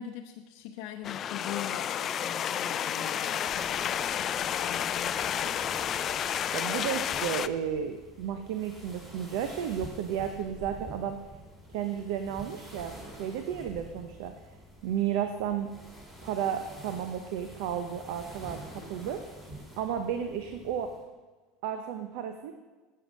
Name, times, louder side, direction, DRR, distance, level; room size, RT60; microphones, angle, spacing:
voice 1, 0.0-5.6, left 10 dB, 65° left, 2 dB, 0.7 m, -42 dB
sound 1, 1.0-7.5, left 9 dB, 35° left, 0.3 m, -31 dB
sound 2, 3.5-21.0, right 1 dB, 10° right, 3.0 m, -48 dB
voice 2, 6.5-11.2 11.7-14.3 14.8-15.7 16.2-19.2 19.8-20.9 21.6-22.5, right 9 dB, 75° right, 7 dB, 0.7 m, -33 dB
8.2 x 7.8 x 6.3 m, 1.2 s
supercardioid pair, 130°, 0 cm